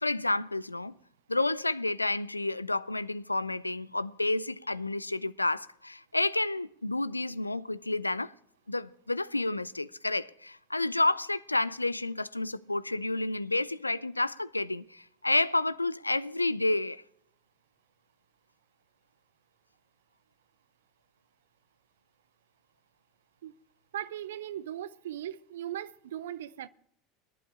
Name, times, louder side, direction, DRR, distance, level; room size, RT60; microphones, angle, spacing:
voice 1, 0.0-0.9 1.3-8.3 8.7-17.0, left 2 dB, 90° left, 0.3 m, -30 dB
voice 2, 23.9-26.7, right 11 dB, 65° right, 0.5 m, -38 dB
21.0 x 11.5 x 2.5 m
figure-of-eight pair, 80°, 0 cm